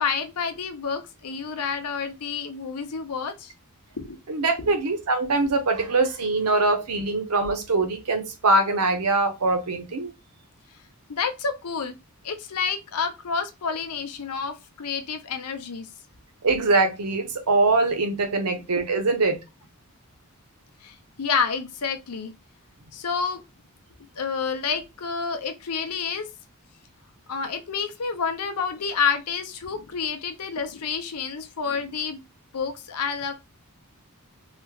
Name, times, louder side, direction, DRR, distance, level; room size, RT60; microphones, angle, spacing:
voice 1, 0.0-3.5 4.0-4.2 4.6-4.7 11.1-12.0 12.2-15.9 18.5-18.6 20.8-22.3 22.9-23.4 24.2-26.3 27.3-32.2 32.5-33.3, left 6 dB, 90° left, 0.7 m, -29 dB
voice 2, 4.3-10.1 16.4-19.4, right 3 dB, 90° right, 0.8 m, -23 dB
3.2 x 3.0 x 2.3 m
head